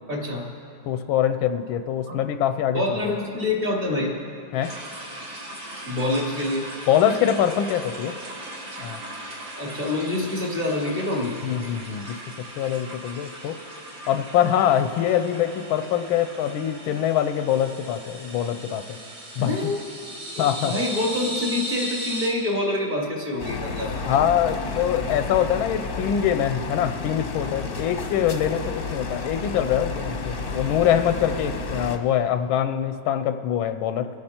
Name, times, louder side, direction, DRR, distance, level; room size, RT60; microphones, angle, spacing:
voice 1, 0.1-0.4 2.1-2.2 2.7-4.1 5.9-6.7 9.6-11.4 19.4-19.9 20.3-24.0, left 2 dB, 40° right, -2 dB, 2.9 m, -26 dB
voice 2, 0.9-3.0 4.5-4.8 6.9-8.1 8.8-9.0 11.4-12.2 12.6-13.6 14.1-19.0 19.4-19.6 20.4-20.7 24.0-34.1, left 10 dB, 85° left, 9 dB, 1.4 m, -24 dB
sound 1, 4.6-22.3, right 1 dB, 70° right, 3.8 m, -37 dB
sound 2, 23.4-32.0, left 3 dB, 40° left, 0.9 m, -31 dB
29.0 x 9.9 x 4.4 m, 2.8 s
omnidirectional pair, 2.2 m